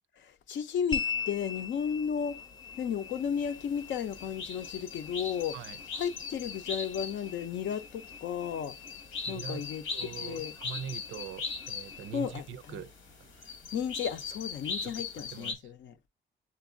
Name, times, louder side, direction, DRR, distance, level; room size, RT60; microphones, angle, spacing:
voice 1, 0.2-2.5 2.8-5.5 5.9-8.7 9.3-10.5 12.1-12.8 13.7-16.0, left 8 dB, 70° left, 0.6 m, -34 dB
sound 1, 0.9-15.5, left 6 dB, 20° left, 0.5 m, -44 dB
sound 2, 3.0-15.5, left 4 dB, 90° left, 1.3 m, -41 dB
voice 2, 9.3-9.6 9.9-12.9 13.4-13.5 14.8-14.9 15.3-15.7, right 8 dB, 80° right, 0.4 m, -42 dB
7.3 x 2.6 x 2.5 m
cardioid pair, 90°, 20 cm